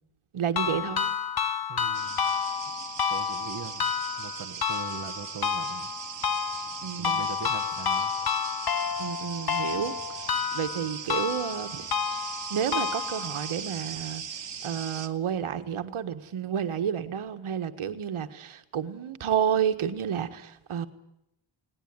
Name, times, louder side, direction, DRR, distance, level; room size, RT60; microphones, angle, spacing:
voice 1, 0.3-1.1 6.8-7.3 9.0-14.2 14.6-20.9, right 8 dB, 85° right, 8 dB, 1.6 m, -31 dB
sound 1, 0.6-13.5, left 7 dB, 50° left, 1.2 m, -30 dB
voice 2, 1.7-2.2 3.1-3.8 4.2-5.9 7.0-8.1 8.7-8.8 9.5-9.7, right 7 dB, 45° right, 6 dB, 1.2 m, -41 dB
sound 2, 1.9-15.1, right 7 dB, 60° right, 1.7 m, -39 dB
19.5 x 18.5 x 9.7 m, 0.83 s
wide cardioid pair, 145°, 49 cm